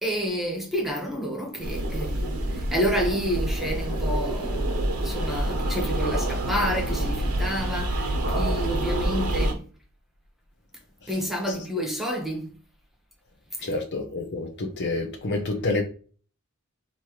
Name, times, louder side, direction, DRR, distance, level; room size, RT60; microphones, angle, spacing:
voice 1, 0.0-9.7 11.1-12.5 13.6-13.8, equal, ahead, 1.2 m, -29 dB
sound 1, 1.6-9.5, right 1 dB, 90° right, 1.2 m, -27 dB
voice 2, 13.6-15.8, left 2 dB, 55° left, 0.8 m, -28 dB
5.4 x 3.0 x 3.1 m
head